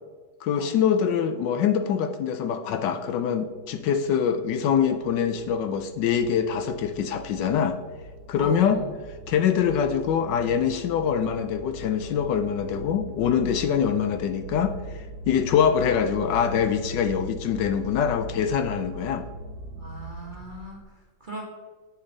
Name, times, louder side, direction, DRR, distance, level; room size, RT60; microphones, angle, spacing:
voice 1, 0.4-7.8 8.3-8.8 9.3-19.3, left 7 dB, 75° left, 8 dB, 1.2 m, -24 dB
sound 1, 3.5-20.8, right 1 dB, 90° right, 1.5 m, -41 dB
voice 2, 8.4-8.9 19.7-21.4, right 1 dB, 30° right, -1 dB, 1.1 m, -39 dB
8.1 x 6.9 x 3.9 m, 1.5 s
omnidirectional pair, 2.1 m